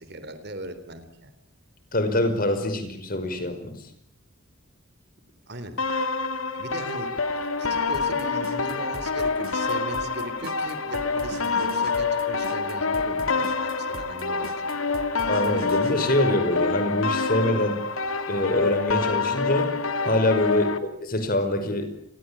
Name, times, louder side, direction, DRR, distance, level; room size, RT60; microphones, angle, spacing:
voice 1, 0.0-1.3 5.5-5.8 6.5-14.8 20.6-20.8, right 1 dB, 50° right, 11 dB, 3.7 m, -39 dB
voice 2, 1.9-3.7 15.3-17.8 18.3-19.7 20.0-20.7 21.0-21.9, left 1 dB, 40° left, 8 dB, 5.3 m, -24 dB
sound 1, 5.8-20.8, left 4 dB, 80° left, 2.2 m, -27 dB
sound 2, 7.9-15.9, right 2 dB, 85° right, 3.0 m, -42 dB
29.0 x 22.0 x 8.9 m, 0.69 s
head